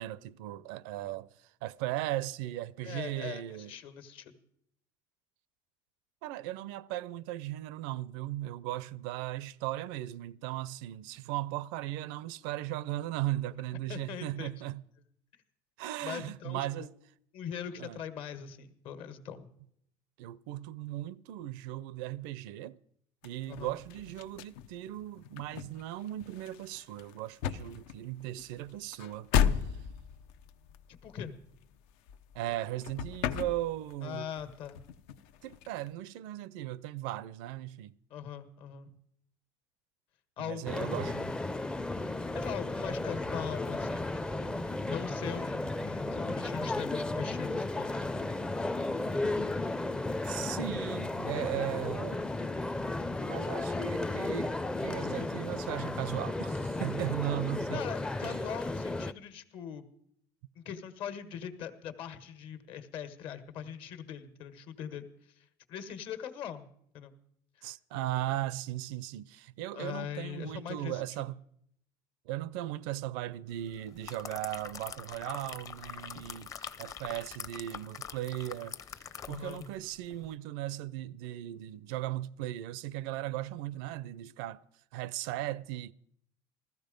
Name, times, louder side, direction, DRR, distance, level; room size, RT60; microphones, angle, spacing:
voice 1, 0.0-3.7 6.2-14.8 15.8-16.9 17.8-18.0 20.2-22.8 23.2-29.8 32.3-34.3 35.4-38.0 40.4-41.3 50.2-52.2 53.2-57.9 58.2-58.4 67.6-71.3 72.3-84.6 84.9-85.9, right 14 dB, 80° right, 0.6 m, -37 dB
voice 2, 2.8-4.3 13.9-14.5 16.0-16.9 17.3-19.5 23.5-23.7 30.9-31.3 34.0-34.8 38.1-38.9 40.4-41.2 42.3-48.0 57.7-59.9 60.5-66.7 66.9-67.1 67.5-67.7 67.9-68.0 69.7-71.3 79.3-79.7, left 8 dB, 60° left, 1.6 m, -41 dB
sound 1, 23.2-32.6 32.8-34.1 34.4-35.9, left 8 dB, 80° left, 0.8 m, -35 dB
sound 2, 40.7-59.1, left 2 dB, 10° left, 0.5 m, -34 dB
sound 3, 73.7-79.8 80.1-80.3, left 7 dB, 35° left, 0.8 m, -44 dB
14.5 x 14.0 x 5.2 m
supercardioid pair, 120°, 10 cm